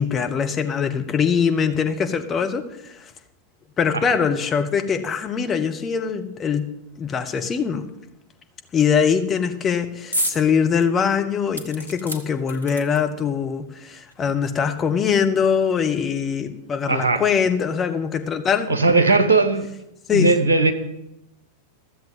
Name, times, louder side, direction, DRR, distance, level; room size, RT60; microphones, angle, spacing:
voice 1, 0.0-3.1 3.8-6.7 7.0-7.9 8.7-18.7 20.1-20.3, left 6 dB, 25° left, 6 dB, 1.1 m, -22 dB
sound 1, 10.1-10.4 10.8-10.9 11.5-13.2 14.1-14.2 14.5-14.6, equal, 85° left, 1.1 m, -29 dB
voice 2, 16.9-17.2 18.7-19.7 20.1-20.7, right 3 dB, 70° right, 7 dB, 1.3 m, -18 dB
13.5 x 7.5 x 7.5 m, 0.85 s
figure-of-eight pair, 90°, 0 cm